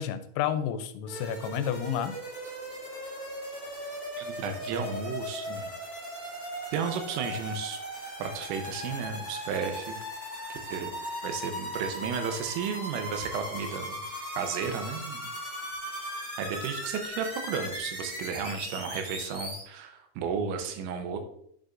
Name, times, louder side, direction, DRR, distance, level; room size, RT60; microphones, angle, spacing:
voice 1, 0.0-2.1, left 9 dB, 85° left, 10 dB, 3.3 m, -30 dB
sound 1, 1.1-19.6, equal, 20° right, 1.2 m, -38 dB
voice 2, 4.2-5.7 6.7-7.8 8.2-10.0 10.7-14.0 14.4-15.3 16.4-21.2, right 6 dB, 80° right, 6 dB, 3.3 m, -33 dB
9.4 x 6.5 x 2.5 m, 0.68 s
omnidirectional pair, 6.0 m